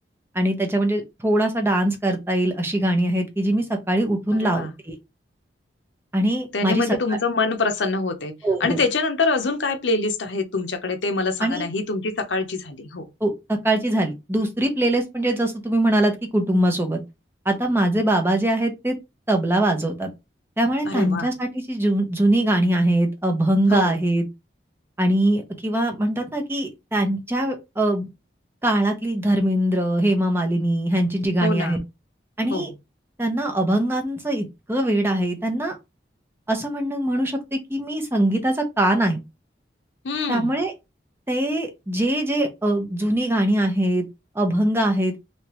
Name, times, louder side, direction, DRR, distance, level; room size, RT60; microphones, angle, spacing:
voice 1, 0.3-5.0 6.1-7.2 8.4-8.8 11.4-11.6 13.2-17.0 17.5-19.0 19.3-20.1 20.6-24.3 25.0-28.1 28.6-31.8 32.4-32.7 33.2-35.8 36.5-39.2 40.3-40.7 41.3-44.1 44.3-45.1, right 1 dB, 15° right, 0.6 m, -22 dB
voice 2, 6.5-8.3 8.6-13.0 20.9-21.3 23.7-24.0 31.4-31.8 32.5-32.7 40.0-40.5, left 3 dB, 85° left, 0.7 m, -25 dB
3.2 x 2.8 x 3.0 m
head